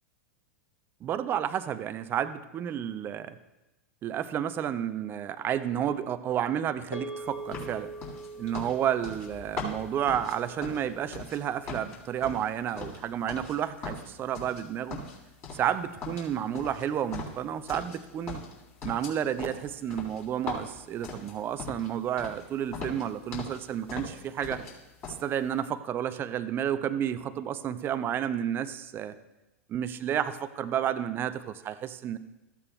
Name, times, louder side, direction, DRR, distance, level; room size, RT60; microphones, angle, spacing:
voice 1, 1.0-3.4 4.0-7.9 8.4-15.0 15.5-18.4 18.8-24.6 25.2-29.2 29.7-32.2, right 9 dB, 30° right, 13 dB, 0.5 m, -31 dB
sound 1, 6.9-11.4, right 2 dB, 80° left, 1.7 m, -43 dB
sound 2, 7.5-11.4 11.7-13.6 13.8-14.6 14.9-15.7 16.0-18.0 18.3-21.9 22.2-22.4 22.7-23.6 23.9-24.7 25.0-25.2, left 4 dB, 35° left, 3.8 m, -40 dB
15.0 x 8.6 x 2.3 m, 1.0 s
figure-of-eight pair, 90°, 8 cm